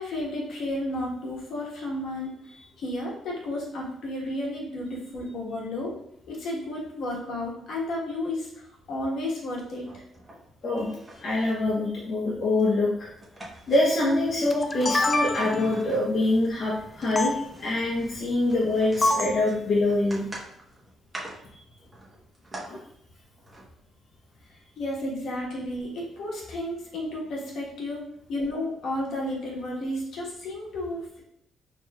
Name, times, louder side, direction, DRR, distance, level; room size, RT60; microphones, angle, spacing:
voice 1, 0.0-2.3 2.8-5.9 6.3-8.5 8.9-9.9 24.8-28.0 28.3-31.2, left 1 dB, 70° left, -3 dB, 1.3 m, -32 dB
sound 1, 9.8-10.5 10.8-11.5 12.6-14.4 14.7-16.5 16.9-22.7 23.4-23.7 25.2-25.3 25.5-25.6, right 1 dB, 20° right, 1.1 m, -43 dB
voice 2, 11.2-13.1 13.7-20.3 22.7-22.8, left 2 dB, 55° left, -6 dB, 0.9 m, -25 dB
sound 2, 14.5-15.7 17.2-17.3 19.0-19.4, left 2 dB, 25° left, 0.3 m, -25 dB
4.5 x 3.1 x 2.3 m, 0.73 s
cardioid pair, 90°, 0 cm